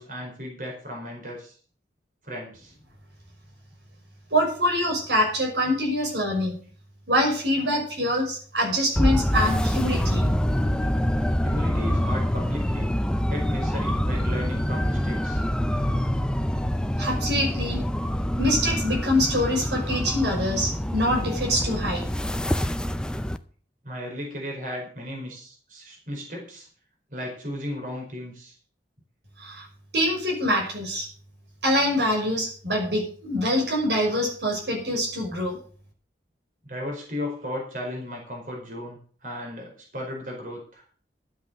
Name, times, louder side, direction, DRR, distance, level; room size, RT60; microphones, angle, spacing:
voice 1, 0.0-1.5 2.2-2.7 11.4-13.0 13.3-15.4 23.8-26.7 27.1-28.5 36.7-40.8, left 1 dB, 50° right, 0 dB, 4.9 m, -35 dB
voice 2, 4.3-6.6 7.1-10.3 17.0-17.8 18.4-22.1 29.4-29.7 29.9-31.1 31.6-35.6, equal, 75° right, -1 dB, 5.6 m, -25 dB
sound 1, 8.9-23.4, equal, 5° left, 0.6 m, -25 dB
12.5 x 8.3 x 6.8 m, 0.43 s
head